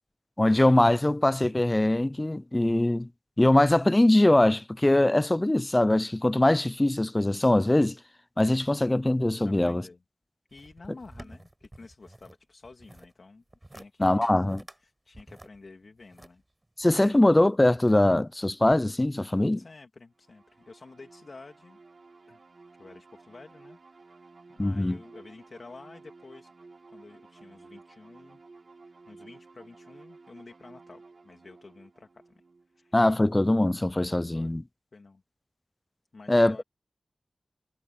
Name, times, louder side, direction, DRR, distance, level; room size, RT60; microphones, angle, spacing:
voice 1, 0.4-3.1 3.4-8.0 8.4-9.8 14.0-14.6 16.8-19.6 24.6-25.0 32.9-34.6 36.3-36.6, left 1 dB, 25° left, 0.3 m, -22 dB
voice 2, 9.4-10.0 10.5-13.4 13.7-14.4 14.8-16.4 19.6-21.8 22.3-22.4 22.8-24.2 24.5-26.5 26.9-28.4 29.1-32.3 32.7-32.9 34.3-34.6 34.9-35.2 36.1-36.6, left 3 dB, 65° left, 2.7 m, -50 dB
sound 1, 10.5-12.4 12.6-13.1 13.5-13.9 14.2-14.8 15.1-17.1 17.7-18.3 18.7-18.8, right 1 dB, 20° right, 4.3 m, -50 dB
sound 2, 20.2-33.7, right 3 dB, 65° right, 2.4 m, -53 dB
cardioid pair, 50°, 0 cm